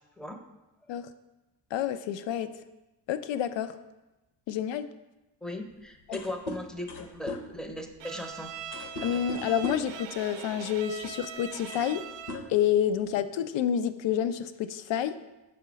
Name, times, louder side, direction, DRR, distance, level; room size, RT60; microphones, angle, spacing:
voice 1, 1.7-2.5 3.1-3.8 4.5-4.9 9.0-12.0 12.5-15.1, left 9 dB, 80° left, 12 dB, 0.5 m, -28 dB
voice 2, 5.4-8.5, left 1 dB, ahead, 5 dB, 0.6 m, -38 dB
sound 1, 5.7-5.8 6.0-10.0 11.0-11.2 11.5-12.0 12.3-13.1, left 1 dB, 65° left, 0.9 m, -40 dB
Bowed string instrument, 8.0-12.6, right 8 dB, 75° right, 0.6 m, -41 dB
5.4 x 4.3 x 5.0 m, 1.0 s
cardioid pair, 90°, 44 cm